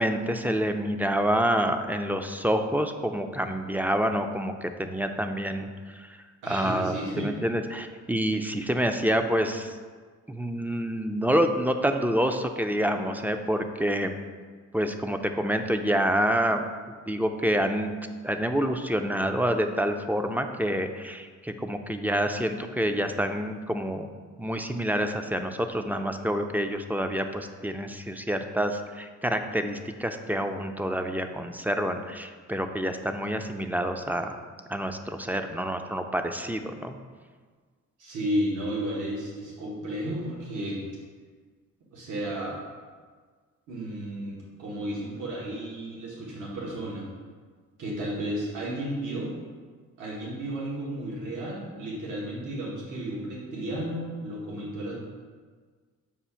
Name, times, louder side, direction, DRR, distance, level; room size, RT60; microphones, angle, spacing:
voice 1, 0.0-6.1 6.5-9.8 10.3-14.1 14.7-16.6 16.9-17.9 18.2-24.1 24.4-34.4 34.7-37.0, equal, 5° right, 6 dB, 0.3 m, -27 dB
voice 2, 6.4-7.3 38.0-40.8 41.9-42.6 43.7-47.1 47.8-49.3 50.0-54.9, right 1 dB, 85° right, -5 dB, 1.4 m, -33 dB
7.0 x 2.5 x 5.5 m, 1.5 s
cardioid pair, 95°, 30 cm